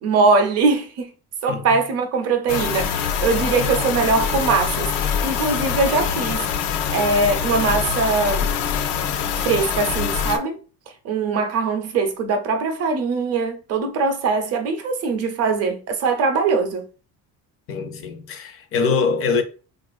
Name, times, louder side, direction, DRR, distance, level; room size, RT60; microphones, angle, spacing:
voice 1, 0.0-1.1 1.4-6.5 6.9-8.5 9.4-10.6 11.0-16.9, right 4 dB, 40° right, 0.6 m, -21 dB
sound 1, 2.5-10.4, left 7 dB, 85° left, 0.6 m, -24 dB
voice 2, 17.7-19.4, left 5 dB, 35° left, 0.4 m, -23 dB
3.5 x 2.5 x 2.3 m
cardioid pair, 160°, 39 cm